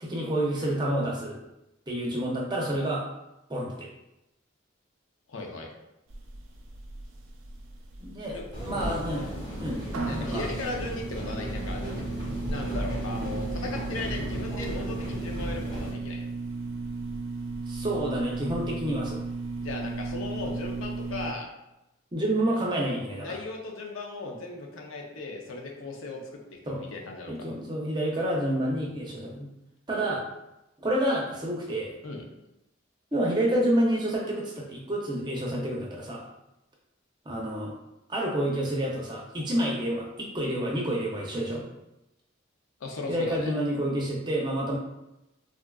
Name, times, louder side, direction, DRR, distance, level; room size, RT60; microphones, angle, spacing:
voice 1, 0.0-1.4 1.9-3.0 3.5-3.9 8.0-8.4 8.6-9.2 9.6-9.8 10.2-10.5 17.7-19.2 22.1-23.3 26.7-26.8 27.3-29.5 29.9-30.2 30.8-31.9 33.1-36.2 37.3-37.7 38.1-41.6 43.1-44.8, right 1 dB, 20° right, -2 dB, 0.5 m, -28 dB
voice 2, 5.3-5.7 8.3-8.4 8.7-9.0 10.0-16.3 19.6-21.5 22.6-22.7 23.2-27.3 32.0-32.2 42.8-43.5, left 3 dB, 85° left, 0 dB, 0.6 m, -37 dB
sound 1, 6.1-21.3, right 3 dB, 75° right, 0.5 m, -36 dB
sound 2, 8.5-15.9, equal, 20° left, 0.8 m, -35 dB
3.6 x 2.3 x 2.3 m, 0.92 s
head